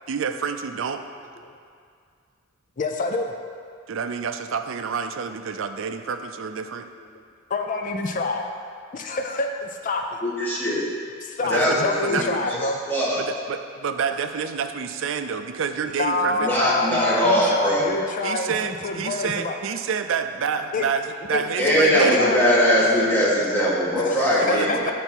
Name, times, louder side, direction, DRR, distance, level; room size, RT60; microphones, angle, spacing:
voice 1, 0.1-1.0 3.9-6.9 11.4-12.4 13.2-16.5 18.2-22.4 24.4-24.9, right 6 dB, 65° right, 8 dB, 0.4 m, -28 dB
voice 2, 2.8-3.3 7.0-7.1 7.5-8.5 8.9-10.2 11.2-12.8 16.0-19.5 20.7-20.8 21.3-22.4 23.9-24.9, left 3 dB, 40° left, 4 dB, 0.5 m, -27 dB
voice 3, 10.2-10.8 11.5-12.6 12.9-13.2 16.3-17.9 21.6-24.8, equal, 10° left, -8 dB, 1.7 m, -21 dB
9.9 x 4.1 x 4.5 m, 2.2 s
head